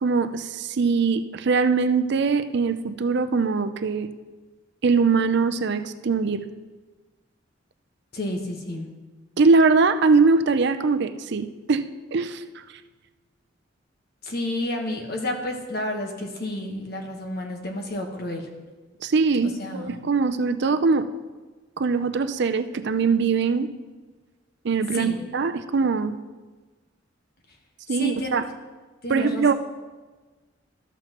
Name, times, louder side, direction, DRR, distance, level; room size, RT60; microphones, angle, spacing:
voice 1, 0.0-4.1 4.8-6.5 9.4-12.4 19.0-21.1 21.8-23.7 24.6-26.2 27.9-28.4 29.1-29.5, right 4 dB, 60° right, 10 dB, 0.5 m, -22 dB
voice 2, 8.1-8.9 14.2-18.5 19.4-20.0 24.9-25.2 27.9-28.3 29.0-29.5, left 1 dB, 55° left, 3 dB, 1.2 m, -30 dB
13.0 x 7.8 x 3.0 m, 1.3 s
head